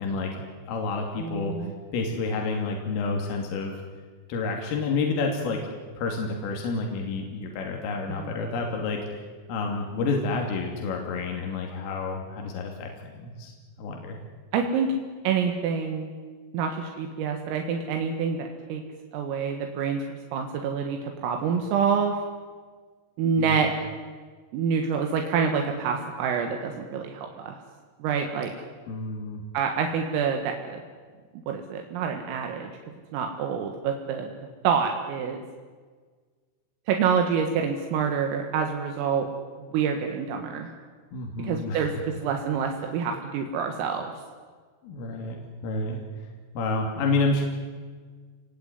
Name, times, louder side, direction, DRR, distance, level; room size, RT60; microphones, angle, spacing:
voice 1, 0.0-1.5 1.9-3.8 4.3-5.6 6.0-9.0 9.5-13.5 13.8-14.2 23.4-23.6 28.9-29.4 41.1-41.9 44.8-46.0 46.6-47.4, left 3 dB, 75° left, 1 dB, 5.2 m, -29 dB
voice 2, 1.2-1.7 8.2-8.3 14.5-15.0 15.2-16.1 16.5-18.8 19.1-22.2 23.2-23.7 24.5-27.6 28.0-28.5 29.5-30.8 31.5-32.7 33.1-34.3 34.6-35.4 36.9-39.3 39.6-40.7 41.4-44.1, right 6 dB, 80° right, 4 dB, 4.4 m, -27 dB
27.5 x 19.5 x 9.7 m, 1.5 s
omnidirectional pair, 5.9 m